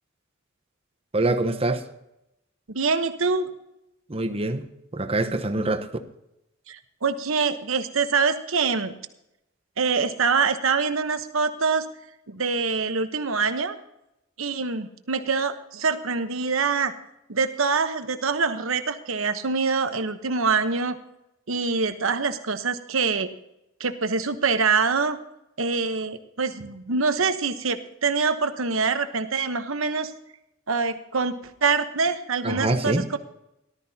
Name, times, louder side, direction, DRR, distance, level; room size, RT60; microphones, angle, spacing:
voice 1, 1.1-1.8 4.1-4.6 4.9-5.9 32.4-33.1, right 2 dB, 30° right, 1.0 m, -24 dB
voice 2, 2.7-3.5 6.7-8.9 9.8-11.8 12.3-13.8 14.4-16.9 17.3-21.0 21.5-23.3 23.8-25.2 25.6-30.1 30.7-33.2, right 4 dB, 70° right, 1.1 m, -25 dB
18.0 x 12.5 x 2.8 m
head